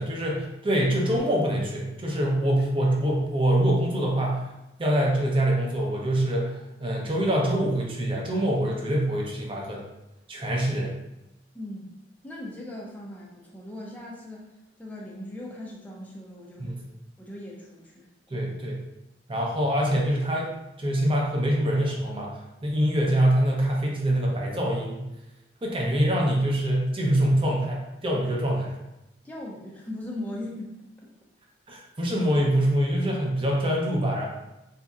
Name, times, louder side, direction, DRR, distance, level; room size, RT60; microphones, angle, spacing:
voice 1, 0.0-4.5 4.8-9.8 10.3-10.9 16.6-16.8 18.3-18.8 19.3-20.5 20.8-22.4 22.6-25.1 25.6-28.7 31.7-34.2, right 1 dB, 30° right, -1 dB, 0.6 m, -24 dB
voice 2, 11.5-11.9 12.2-14.5 14.8-16.7 17.2-18.5 29.2-30.7 31.0-31.1, left 1 dB, 10° left, -3 dB, 0.4 m, -39 dB
4.1 x 2.7 x 2.4 m, 0.93 s
head